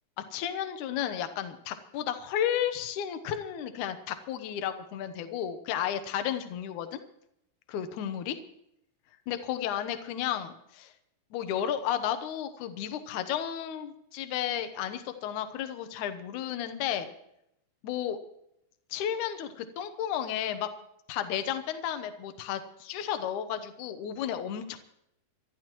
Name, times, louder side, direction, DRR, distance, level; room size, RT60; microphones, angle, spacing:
voice 1, 0.3-7.0 7.7-8.4 9.3-10.9 11.3-17.1 17.8-18.2 18.9-20.7 21.1-24.8, left 10 dB, 75° left, 9 dB, 1.8 m, -33 dB
26.5 x 13.0 x 3.0 m, 0.79 s
omnidirectional pair, 4.8 m